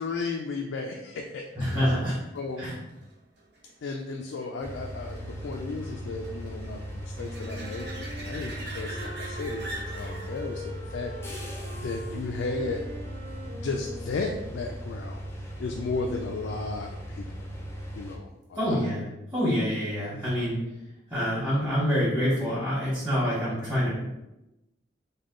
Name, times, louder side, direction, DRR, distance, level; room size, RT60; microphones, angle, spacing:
voice 1, 0.0-1.8 2.3-2.8 3.8-9.7 9.9-11.5 11.8-12.8 13.5-15.2 15.6-17.4 18.0-18.8, left 3 dB, 80° left, 1 dB, 0.3 m, -34 dB
voice 2, 1.5-2.2 2.6-2.8 18.6-19.0 19.3-20.6 21.1-23.9, equal, 15° right, -11 dB, 1.1 m, -26 dB
sound 1, 1.5-12.8 18.4-18.5, right 1 dB, 65° right, 0.8 m, -45 dB
sound 2, 4.6-18.2, equal, 15° left, 0.5 m, -38 dB
Wind instrument woodwind instrument, 7.1-14.8, left 1 dB, 35° right, 0.8 m, -43 dB
3.5 x 2.2 x 3.7 m, 0.95 s
head